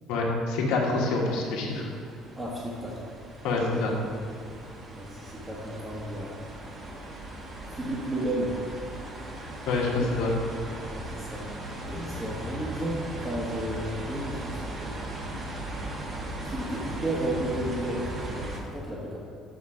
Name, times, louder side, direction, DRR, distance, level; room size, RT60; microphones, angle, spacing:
voice 1, 0.1-1.9 3.4-3.9 9.7-10.3, left 3 dB, 80° left, -1 dB, 1.4 m, -26 dB
sound 1, 0.8-18.6, right 1 dB, 35° right, 1.3 m, -38 dB
voice 2, 2.4-3.0 4.9-6.4 7.7-8.6 10.9-11.4 11.8-15.2 16.4-19.2, right 1 dB, 20° right, -7 dB, 1.3 m, -33 dB
6.5 x 5.5 x 4.9 m, 2.4 s
supercardioid pair, 95°, 0 cm